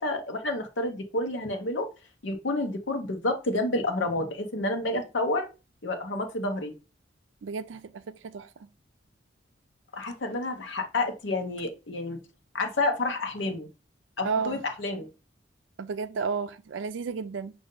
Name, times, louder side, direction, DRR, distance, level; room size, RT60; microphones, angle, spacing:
voice 1, 0.0-1.9 2.2-5.5 5.8-6.7 9.9-12.2 12.5-13.7 14.2-15.1, left 2 dB, 80° left, 0.9 m, -29 dB
voice 2, 7.4-8.7 14.2-14.6 15.8-17.5, right 5 dB, 80° right, 0.4 m, -32 dB
5.4 x 2.6 x 3.7 m
head